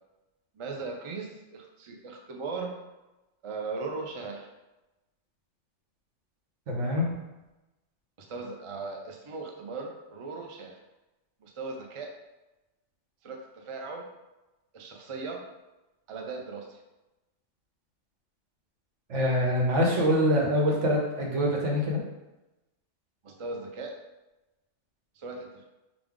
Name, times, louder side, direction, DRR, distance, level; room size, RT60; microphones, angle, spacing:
voice 1, 0.5-2.8 3.4-4.5 8.2-10.8 11.4-12.2 13.2-14.1 14.7-15.5 16.1-16.8 23.2-24.0 25.2-25.6, right 3 dB, 40° right, 1 dB, 0.4 m, -38 dB
voice 2, 6.7-7.0 19.1-22.0, equal, 80° right, -2 dB, 1.3 m, -24 dB
5.1 x 2.4 x 3.6 m, 1.0 s
omnidirectional pair, 1.2 m